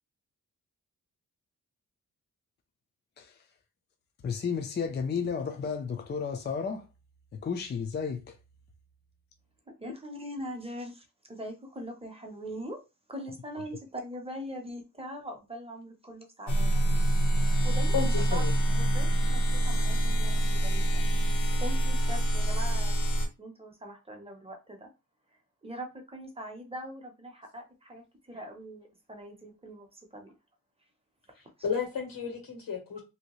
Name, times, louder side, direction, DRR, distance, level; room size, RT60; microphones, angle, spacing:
voice 1, 4.2-6.9 7.3-8.4, left 6 dB, 30° left, 0.4 m, -32 dB
voice 2, 9.8-12.8 13.1-16.9 17.6-21.1 21.6-23.0 23.4-24.9 25.6-30.3, equal, 15° right, 0.7 m, -42 dB
sound 1, 16.5-23.3, right 1 dB, 60° left, 0.8 m, -25 dB
voice 3, 17.9-18.5 21.5-21.6 31.6-33.0, left 6 dB, 85° left, 1.4 m, -32 dB
3.0 x 2.7 x 3.0 m
wide cardioid pair, 150°, 34 cm